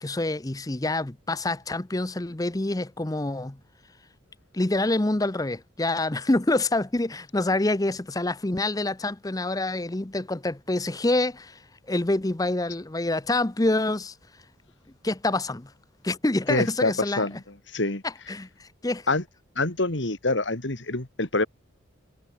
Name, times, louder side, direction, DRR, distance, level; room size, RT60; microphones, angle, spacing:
voice 1, 0.0-3.6 4.5-11.6 11.9-14.1 15.0-15.7 16.0-17.3 18.0-19.1, left 2 dB, 20° left, 0.7 m, -26 dB
voice 2, 16.5-17.4 17.7-18.0 19.1-19.2 19.6-21.5, left 2 dB, 65° left, 2.3 m, -26 dB
head